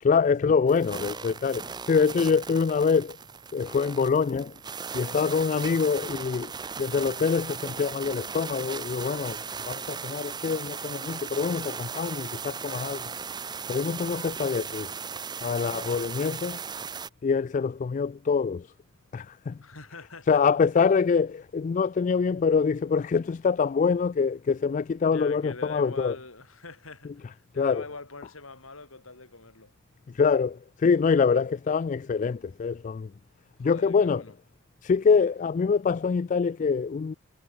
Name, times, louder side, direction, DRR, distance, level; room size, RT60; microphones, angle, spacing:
voice 1, 0.0-3.2 3.5-4.6 4.9-6.5 6.8-9.4 9.7-13.1 13.7-14.9 15.4-16.6 17.2-18.7 19.1-19.6 20.3-26.2 27.6-27.8 30.1-33.1 33.6-34.2 34.8-37.1, left 5 dB, 35° left, 0.3 m, -25 dB
sound 1, 0.7-17.1, right 6 dB, 20° right, 0.7 m, -37 dB
voice 2, 19.6-20.4 25.0-29.7 33.6-34.3, left 3 dB, 85° left, 4.3 m, -43 dB
head